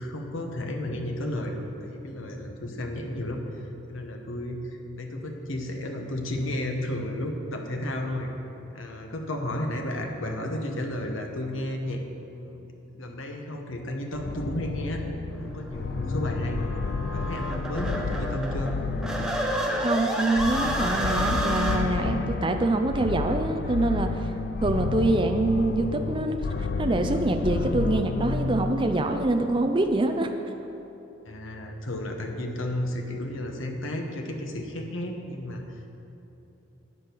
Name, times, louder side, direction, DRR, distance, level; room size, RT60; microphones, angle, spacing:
voice 1, 0.0-3.4 3.9-8.3 8.7-12.0 12.3-15.0 15.4-16.6 17.1-18.7 31.2-35.9, left 1 dB, 80° left, 3 dB, 1.1 m, -33 dB
sound 1, 14.1-29.8, left 4 dB, 50° left, 0.3 m, -31 dB
sound 2, 15.3-21.8, right 1 dB, 5° right, 0.9 m, -30 dB
voice 2, 19.8-24.3 24.6-30.3, right 2 dB, 25° right, 5 dB, 0.5 m, -25 dB
12.0 x 8.7 x 4.6 m, 3.0 s
head